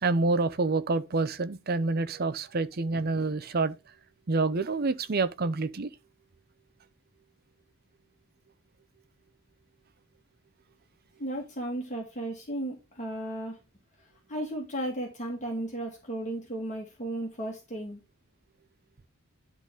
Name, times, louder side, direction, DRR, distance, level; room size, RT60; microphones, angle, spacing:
voice 1, 0.0-3.8 4.3-5.9, right 3 dB, 45° right, 0.6 m, -27 dB
voice 2, 11.2-13.6 14.3-18.0, right 1 dB, 35° left, 2.2 m, -34 dB
11.0 x 4.0 x 5.0 m
head